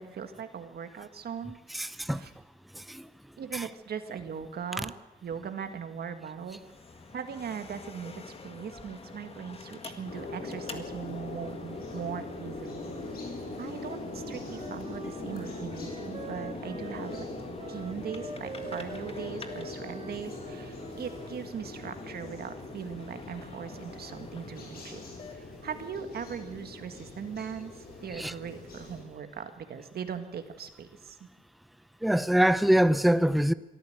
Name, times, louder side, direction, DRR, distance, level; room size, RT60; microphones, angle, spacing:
voice 1, 0.0-1.9 2.1-2.3 3.4-4.9 5.2-6.6 7.1-12.8 13.6-17.2 17.7-25.0 25.3-31.2, right 7 dB, 90° right, 1.8 m, -39 dB
voice 2, 1.7-2.3 2.7-3.1 3.5-3.7 28.1-28.3 32.0-33.5, right 1 dB, ahead, 0.6 m, -24 dB
sound 1, 6.4-25.3, left 4 dB, 40° left, 1.9 m, -48 dB
sound 2, 10.0-29.0, left 2 dB, 80° left, 5.9 m, -41 dB
Wind instrument woodwind instrument, 14.0-21.4, right 6 dB, 35° right, 0.8 m, -46 dB
23.5 x 14.0 x 7.9 m
wide cardioid pair, 145°, 16 cm